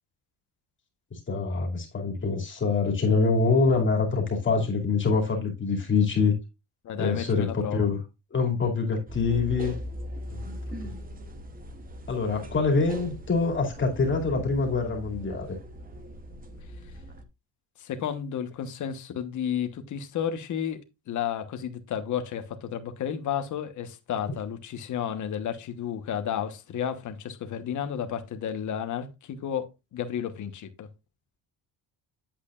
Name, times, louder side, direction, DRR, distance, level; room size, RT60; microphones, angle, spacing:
voice 1, 1.1-6.3 7.0-8.0 8.3-9.8 10.3-10.4 12.1-15.5, left 4 dB, 30° left, 2.5 m, -25 dB
voice 2, 6.8-7.9 17.8-30.9, left 9 dB, 50° left, 1.2 m, -32 dB
sound 1, 9.1-17.2, equal, 20° right, 1.0 m, -40 dB
8.7 x 8.0 x 2.4 m
cardioid pair, 150°, 38 cm